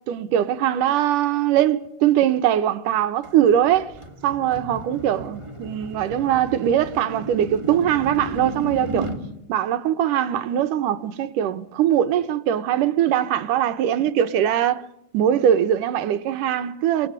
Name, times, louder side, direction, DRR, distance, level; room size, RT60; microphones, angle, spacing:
voice 1, 0.1-3.9 4.2-9.1 9.5-14.8 15.1-17.1, right 10 dB, 80° right, 2.7 m, -21 dB
sound 1, 3.2-9.2, right 2 dB, 10° right, 2.7 m, -34 dB
27.5 x 19.5 x 9.5 m
omnidirectional pair, 3.7 m